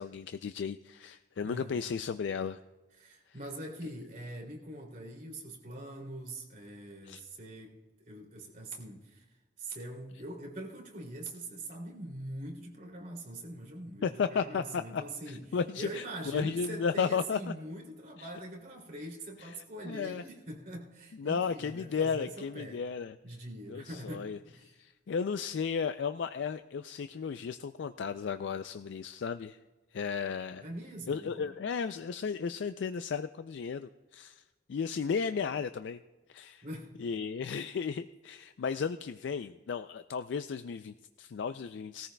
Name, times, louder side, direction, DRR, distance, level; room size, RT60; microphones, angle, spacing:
voice 1, 0.0-2.6 7.0-7.2 14.0-17.5 19.4-19.5 19.9-20.2 21.2-23.2 23.7-24.4 24.6-29.6 29.9-30.7 31.1-34.4 34.7-36.0 36.3-36.6 37.0-42.1, left 6 dB, 65° left, 10 dB, 0.3 m, -34 dB
voice 2, 1.4-1.8 3.0-7.7 8.0-9.2 9.6-22.8 23.2-24.7 30.6-31.6 36.6-36.9, right 1 dB, 45° right, -1 dB, 2.7 m, -43 dB
19.5 x 14.0 x 2.2 m, 1.2 s
head